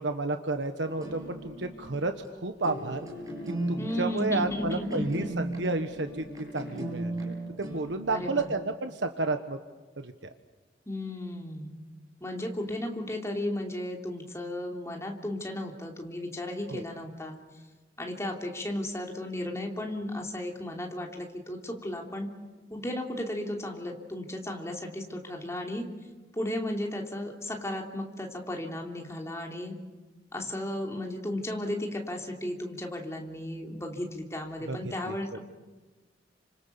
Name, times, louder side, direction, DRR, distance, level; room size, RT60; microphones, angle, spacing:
voice 1, 0.0-3.1 3.7-6.3 6.5-9.6 10.0-10.1 16.7-16.8 34.7-34.8 35.1-35.4, right 3 dB, 75° right, 7 dB, 1.3 m, -31 dB
sound 1, 0.9-8.6, right 1 dB, 20° right, 7.4 m, -37 dB
voice 2, 3.8-5.0 8.1-8.4 10.9-11.7 12.2-17.4 18.0-22.3 22.7-25.9 26.3-29.7 30.3-35.4, left 1 dB, 15° left, 1 dB, 3.1 m, -34 dB
30.0 x 26.0 x 6.9 m, 1.3 s
head